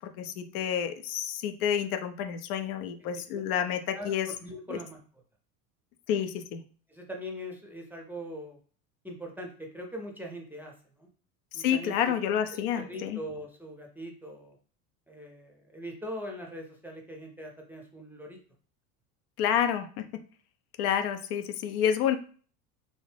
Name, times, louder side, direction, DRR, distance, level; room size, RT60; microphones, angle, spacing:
voice 1, 0.0-4.3 4.7-4.8 6.1-6.6 11.5-13.2 19.4-20.1 20.8-22.2, left 9 dB, 70° left, 7 dB, 0.6 m, -29 dB
voice 2, 3.9-5.0 6.9-8.6 9.0-11.1 11.5-12.1 12.5-14.6 15.1-18.4, equal, 5° right, 1 dB, 0.5 m, -41 dB
2.6 x 2.0 x 3.2 m, 0.42 s
hypercardioid pair, 80°, 45 cm